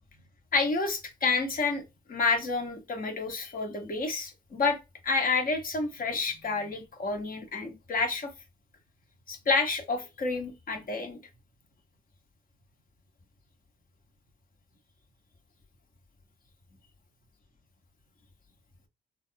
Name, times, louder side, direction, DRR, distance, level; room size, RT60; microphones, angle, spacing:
voice 1, 0.5-1.8 2.1-4.8 5.0-8.3 9.3-11.2, left 4 dB, 55° left, 1.2 m, -29 dB
3.4 x 2.4 x 2.2 m
supercardioid pair, 55°, 18 cm